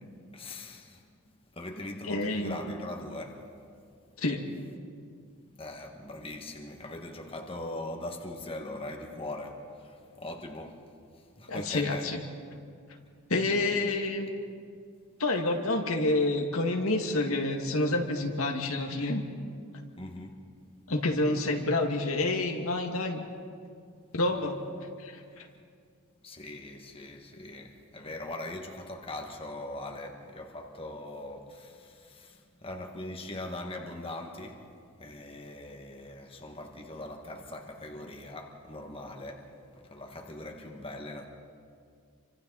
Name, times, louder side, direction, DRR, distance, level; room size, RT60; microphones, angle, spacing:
voice 1, 0.3-1.0 1.5-3.4 5.6-10.8 11.4-12.1 20.0-20.4 26.2-34.6 35.0-39.5 39.9-41.3, left 1 dB, 25° left, 2 dB, 1.8 m, -41 dB
voice 2, 2.0-2.6 4.2-4.4 11.5-12.2 13.3-14.3 15.2-19.2 20.9-23.2 24.1-24.6 25.0-25.5, left 2 dB, 75° left, 2 dB, 2.1 m, -28 dB
29.0 x 25.0 x 4.1 m, 2.2 s
head